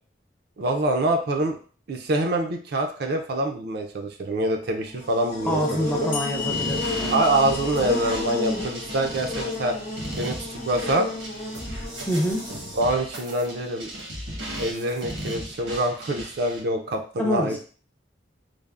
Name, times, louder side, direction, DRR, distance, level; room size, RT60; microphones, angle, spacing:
voice 1, 0.6-1.6 1.9-6.1 7.1-9.8 10.1-10.4 10.6-11.1 12.7-13.9 14.6-17.6, right 1 dB, 55° right, 4 dB, 0.4 m, -25 dB
Buzz, 4.8-13.0, left 2 dB, 50° left, 0.7 m, -33 dB
voice 2, 5.5-7.2 12.1-12.5 17.2-17.6, equal, 10° left, 0 dB, 0.4 m, -26 dB
sound 1, 6.1-9.5, left 7 dB, 85° left, 0.7 m, -35 dB
sound 2, 6.5-16.6, right 1 dB, 80° right, 1.0 m, -36 dB
3.2 x 2.0 x 2.4 m, 0.40 s
head